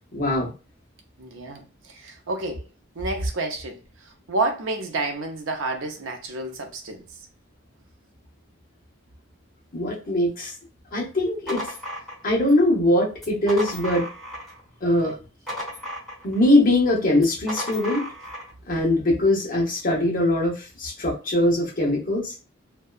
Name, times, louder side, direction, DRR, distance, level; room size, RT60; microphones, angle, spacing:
voice 1, 0.1-0.5 9.7-10.5 10.9-11.6 12.2-14.1 14.8-15.1 16.2-18.1 18.7-22.4, left 1 dB, 45° left, 0.9 m, -21 dB
voice 2, 1.2-2.7 3.0-7.0, right 2 dB, 70° right, 0.6 m, -30 dB
sound 1, 11.1-12.6 13.1-14.6 14.9-16.5 17.2-18.5, equal, ahead, 1.0 m, -35 dB
2.7 x 2.2 x 2.3 m
head